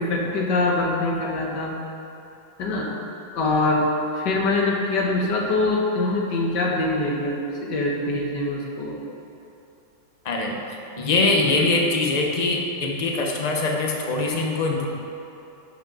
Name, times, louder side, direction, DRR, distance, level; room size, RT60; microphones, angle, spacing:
voice 1, 0.0-1.7 2.6-2.9 3.3-3.8 4.1-9.0 11.6-11.7, left 2 dB, 65° left, -1 dB, 1.8 m, -24 dB
voice 2, 10.2-10.6 11.0-14.9, left 3 dB, 35° left, 0 dB, 0.6 m, -23 dB
11.5 x 7.2 x 3.9 m, 2.9 s
omnidirectional pair, 2.1 m